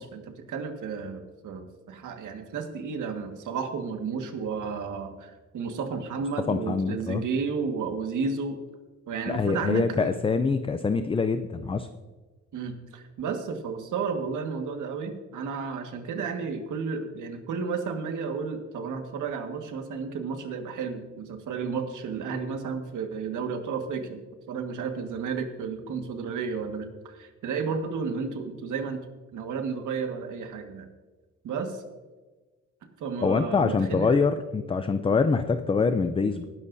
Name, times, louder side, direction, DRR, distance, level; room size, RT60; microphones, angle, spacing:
voice 1, 0.0-8.6 9.1-10.2 12.5-29.0 29.3-30.9 31.4-31.8 33.0-34.2, right 5 dB, 80° right, 5 dB, 1.7 m, -32 dB
voice 2, 6.5-7.2 9.3-11.9 33.2-36.5, left 4 dB, 20° left, 9 dB, 0.4 m, -25 dB
19.5 x 11.0 x 2.7 m, 1.3 s
cardioid pair, 150°, 30 cm